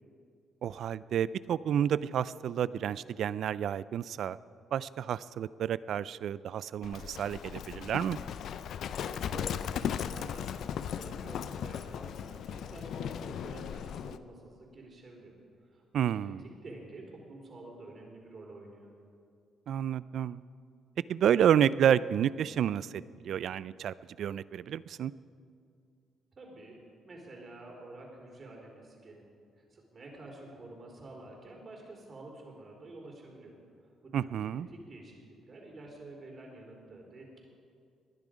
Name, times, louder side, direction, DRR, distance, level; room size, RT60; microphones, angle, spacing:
voice 1, 0.6-4.4 4.7-8.2 15.9-16.4 19.7-20.4 21.1-25.1 34.1-34.7, right 9 dB, 70° right, 18 dB, 0.3 m, -30 dB
Livestock farm animals working animals, 6.8-14.2, left 8 dB, 70° left, 0.5 m, -37 dB
voice 2, 9.0-9.6 10.1-15.3 15.6-15.8 16.1-18.9 26.3-26.8 27.1-29.3 29.6-33.5 33.8-37.4, right 2 dB, 45° right, 0 dB, 3.8 m, -49 dB
19.5 x 10.5 x 5.1 m, 2.3 s
cardioid pair, 90°, 0 cm